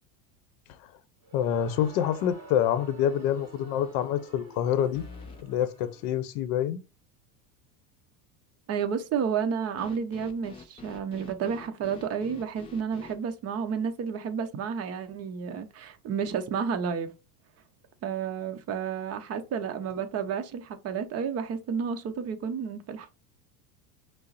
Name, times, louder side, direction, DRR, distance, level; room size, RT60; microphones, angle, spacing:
Crowd, 1.2-6.2, right 2 dB, 5° right, 2.5 m, -49 dB
voice 1, 1.3-5.0 5.4-6.8, left 10 dB, 55° left, 0.7 m, -27 dB
sound 1, 4.9-5.5 9.8-13.2, left 4 dB, 15° left, 0.3 m, -47 dB
voice 2, 8.7-17.1 18.0-23.1, right 6 dB, 30° right, 0.7 m, -31 dB
5.4 x 2.0 x 3.9 m
supercardioid pair, 125°, 47 cm